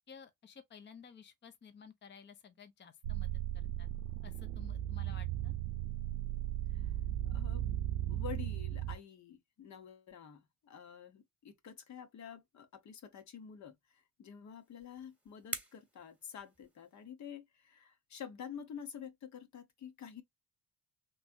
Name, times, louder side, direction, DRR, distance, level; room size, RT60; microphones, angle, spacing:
voice 1, 0.1-3.9 4.2-5.5, left 6 dB, 30° left, 0.8 m, -55 dB
sound 1, 3.0-9.0, right 12 dB, 75° right, 0.6 m, -36 dB
voice 2, 7.2-7.7 8.1-20.2, left 8 dB, 55° left, 1.1 m, -49 dB
sound 2, 14.4-17.1, right 2 dB, 5° right, 1.4 m, -47 dB
3.2 x 3.2 x 2.6 m
supercardioid pair, 65°, 34 cm